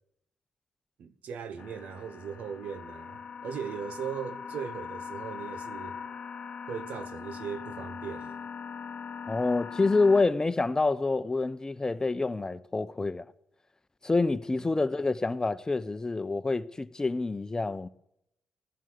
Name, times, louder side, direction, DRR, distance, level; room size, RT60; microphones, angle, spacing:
voice 1, 1.0-6.0 6.7-8.4 14.5-14.6, right 7 dB, 70° right, 1.2 m, -38 dB
sound 1, 1.6-10.2, left 6 dB, 55° left, 1.2 m, -41 dB
voice 2, 9.3-13.2 14.0-17.9, left 3 dB, 25° left, 0.8 m, -27 dB
17.0 x 11.0 x 6.8 m
supercardioid pair, 50°, 3 cm